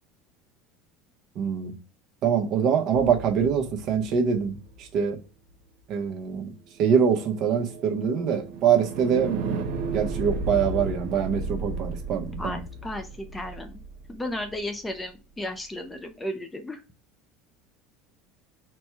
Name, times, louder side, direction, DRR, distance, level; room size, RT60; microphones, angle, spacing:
voice 1, 1.4-1.7 2.2-5.2 5.9-6.5 6.8-9.4 9.9-12.6, right 7 dB, 45° right, 4 dB, 0.8 m, -24 dB
Sci-fi Bladerunner Tones, 2.9-5.1 6.9-15.0, right 3 dB, 85° right, 0.8 m, -35 dB
voice 2, 12.4-13.8 14.1-16.8, left 1 dB, 10° left, 7 dB, 0.4 m, -34 dB
4.3 x 2.2 x 4.5 m, 0.30 s
cardioid pair, 160°, 0 cm